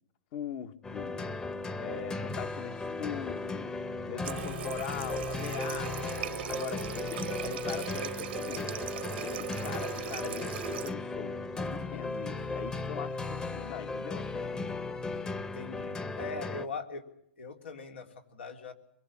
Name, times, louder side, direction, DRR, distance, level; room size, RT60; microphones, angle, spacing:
voice 1, 0.3-1.3 1.8-3.7 4.1-6.1 6.4-8.7 9.2-14.6, left 9 dB, 50° left, 9 dB, 1.4 m, -41 dB
sound 1, 0.8-16.7, left 3 dB, 15° left, 0.9 m, -36 dB
Water tap faucet, 4.2-10.9, right 13 dB, 70° right, 0.9 m, -39 dB
voice 2, 15.3-17.0 17.4-18.7, left 4 dB, 85° left, 4 dB, 3.2 m, -41 dB
23.5 x 23.0 x 7.3 m, 0.75 s
hypercardioid pair, 125°, 6 cm